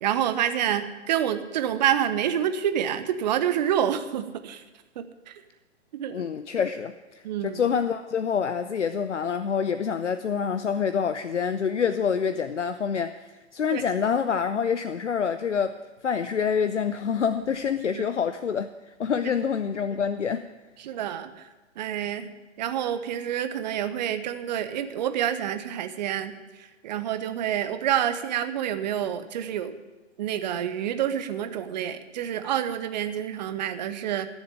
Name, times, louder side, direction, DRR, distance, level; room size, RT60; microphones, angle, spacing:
voice 1, 0.0-4.6 5.0-5.4 5.9-6.2 7.2-7.6 13.7-13.8 17.9-18.0 20.8-21.5 21.8-22.3 22.6-26.3 26.8-29.8 30.2-34.3, right 10 dB, 35° right, 10 dB, 1.0 m, -28 dB
voice 2, 6.1-20.5, left 7 dB, 75° left, 11 dB, 0.7 m, -27 dB
14.0 x 7.3 x 9.1 m, 1.2 s
figure-of-eight pair, 125°, 36 cm